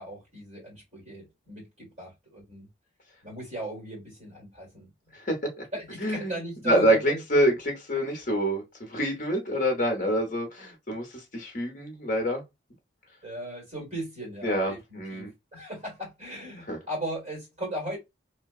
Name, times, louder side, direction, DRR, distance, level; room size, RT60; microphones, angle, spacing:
voice 1, 0.0-2.7 3.2-4.9 5.7-7.2 13.2-18.0, right 1 dB, 35° right, 1.7 m, -37 dB
voice 2, 5.1-5.6 6.0-6.3 6.6-12.4 14.4-15.3 16.7-16.8, equal, 40° left, 0.8 m, -26 dB
2.7 x 2.1 x 2.3 m
head